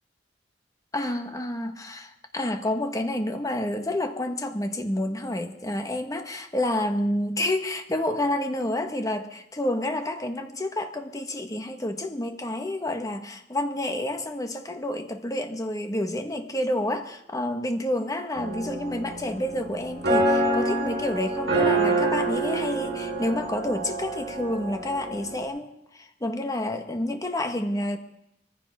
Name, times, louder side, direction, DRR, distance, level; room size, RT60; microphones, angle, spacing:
voice 1, 0.9-28.0, left 1 dB, 20° left, 5 dB, 1.3 m, -29 dB
sound 1, 18.4-25.4, right 2 dB, 75° right, 4.2 m, -27 dB
23.5 x 15.0 x 3.6 m, 0.78 s
head